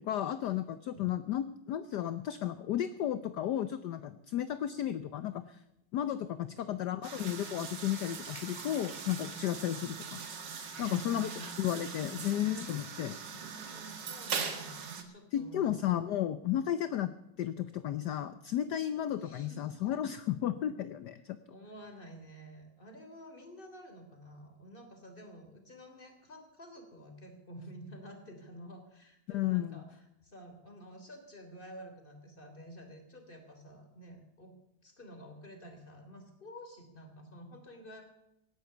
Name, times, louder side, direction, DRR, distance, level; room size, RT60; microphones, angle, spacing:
voice 1, 0.0-5.6 5.9-10.2 10.8-11.3 11.6-13.2 15.3-17.1 17.4-21.4 29.3-29.8, left 11 dB, 65° left, 13 dB, 1.2 m, -33 dB
sound 1, 7.0-15.0, right 6 dB, 65° right, 2.4 m, -41 dB
sound 2, 7.1-10.0, right 1 dB, 15° right, 3.5 m, -55 dB
voice 2, 10.7-12.0 13.3-15.8 19.2-20.0 21.2-34.5 34.8-38.0, right 1 dB, 25° left, 5 dB, 3.5 m, -50 dB
17.5 x 11.5 x 6.8 m, 0.85 s
omnidirectional pair, 2.1 m